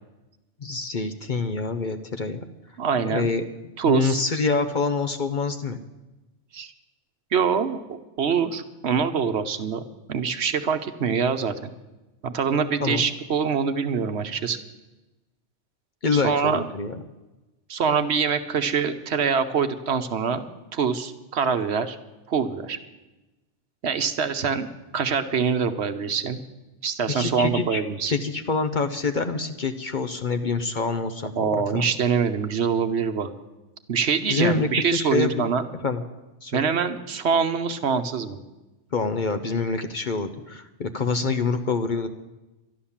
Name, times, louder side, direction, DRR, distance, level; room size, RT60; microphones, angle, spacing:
voice 1, 0.6-2.4 3.1-3.4 3.9-5.8 12.8-13.0 16.0-17.0 27.1-27.8 28.1-31.9 34.3-35.3 35.8-36.0 36.4-36.6 38.9-42.1, left 4 dB, 45° left, 8 dB, 0.8 m, -26 dB
voice 2, 2.8-3.3 3.8-4.2 6.5-6.7 7.3-7.8 8.2-11.7 12.2-14.6 16.1-16.6 17.7-20.5 20.7-22.0 22.3-22.8 23.8-26.4 26.8-28.1 31.4-33.3 33.9-35.6 36.5-38.4, right 6 dB, 65° right, 9 dB, 1.1 m, -24 dB
12.0 x 11.5 x 7.2 m, 1.1 s
omnidirectional pair, 1.2 m